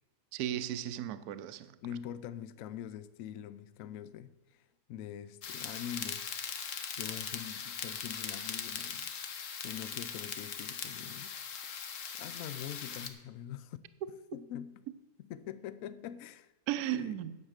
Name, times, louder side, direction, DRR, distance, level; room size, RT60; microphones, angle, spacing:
voice 1, 0.3-1.8 16.7-17.4, right 12 dB, 70° right, 1.0 m, -35 dB
voice 2, 1.8-6.2 7.0-9.1 9.6-11.3 11.6-11.7 12.2-13.8 14.3-14.7 15.2-16.5 16.9-17.2, left 10 dB, 70° left, 0.8 m, -44 dB
sound 1, 5.4-13.1, left 7 dB, 55° left, 1.1 m, -40 dB
9.7 x 7.4 x 6.4 m
omnidirectional pair, 1.8 m